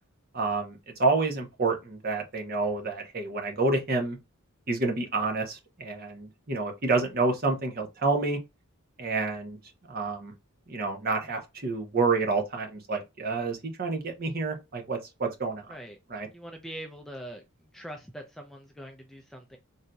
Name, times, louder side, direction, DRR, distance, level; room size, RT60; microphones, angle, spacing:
voice 1, 0.3-4.2 4.7-8.4 9.0-9.6 9.9-10.3 10.7-15.7 16.1-16.3, right 3 dB, 40° right, 0.8 m, -28 dB
voice 2, 16.3-17.4 17.7-19.6, right 1 dB, ahead, 0.3 m, -42 dB
3.9 x 2.7 x 2.2 m
head